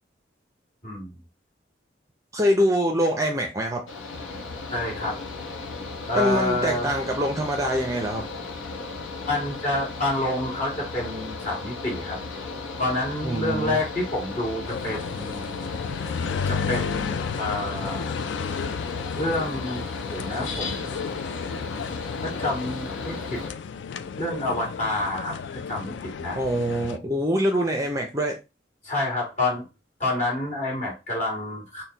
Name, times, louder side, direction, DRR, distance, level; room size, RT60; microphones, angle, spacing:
voice 1, 0.8-1.1 4.7-5.2 6.1-6.9 9.3-12.2 12.8-15.6 16.5-18.1 19.2-20.9 22.2-23.4 24.2-26.4 28.8-29.6 30.0-31.8, left 2 dB, 35° left, -3 dB, 2.1 m, -28 dB
voice 2, 2.3-3.8 6.1-8.3 13.2-13.8 26.4-28.4, equal, 15° right, 3 dB, 0.5 m, -24 dB
Mechanical fan, 3.9-23.5, left 3 dB, 90° left, 0.8 m, -35 dB
sound 1, 14.7-27.0, left 6 dB, 65° left, 0.3 m, -33 dB
4.3 x 2.2 x 3.9 m, 0.27 s
head